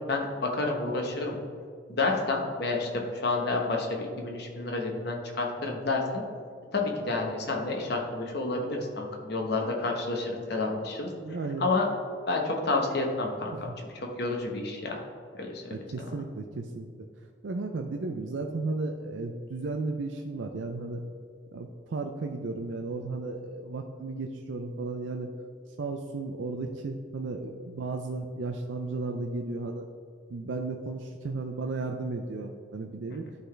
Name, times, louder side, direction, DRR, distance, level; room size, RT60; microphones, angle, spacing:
voice 1, 0.0-1.4 1.9-6.2 6.7-11.1 11.6-11.9 12.3-15.0 15.3-15.8, left 3 dB, 60° left, 1 dB, 1.1 m, -30 dB
voice 2, 11.2-11.7 13.5-13.7 15.7-17.1 17.4-21.0 21.5-25.3 25.8-29.9 30.3-33.3, right 3 dB, 75° right, 4 dB, 0.5 m, -34 dB
11.5 x 4.0 x 3.3 m, 2.1 s
head